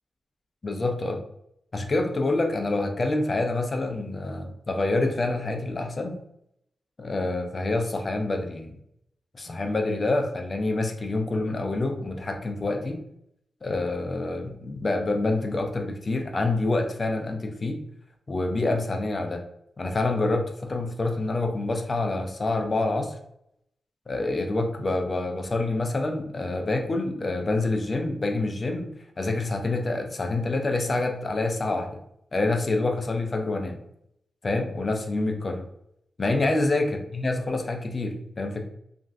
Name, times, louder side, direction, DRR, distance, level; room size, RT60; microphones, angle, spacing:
voice 1, 0.6-1.2 1.7-6.2 7.0-8.7 9.3-13.0 13.6-17.8 18.3-19.4 19.8-23.2 24.1-32.0 32.3-33.8 34.4-35.7 36.2-38.6, left 2 dB, 40° left, 5 dB, 0.5 m, -27 dB
3.1 x 2.5 x 2.5 m, 0.76 s
cardioid pair, 70°, 0 cm